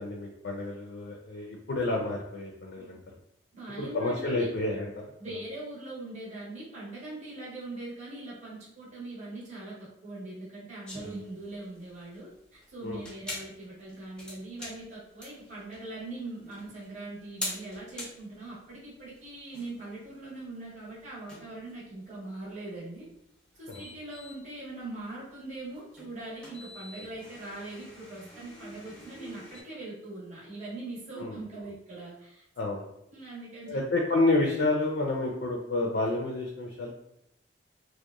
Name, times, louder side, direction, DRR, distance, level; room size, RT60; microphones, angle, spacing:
voice 1, 0.0-3.0 3.8-4.9 12.8-13.0 23.7-23.8 31.2-31.4 32.6-32.8 33.7-36.9, left 2 dB, 60° left, 0 dB, 0.4 m, -29 dB
voice 2, 3.5-4.5 5.2-23.1 23.6-32.4 33.1-33.8, right 2 dB, 40° right, -7 dB, 0.8 m, -41 dB
sound 1, 10.9-29.6, left 1 dB, 5° left, 0.5 m, -45 dB
2.8 x 2.1 x 2.3 m, 0.80 s
head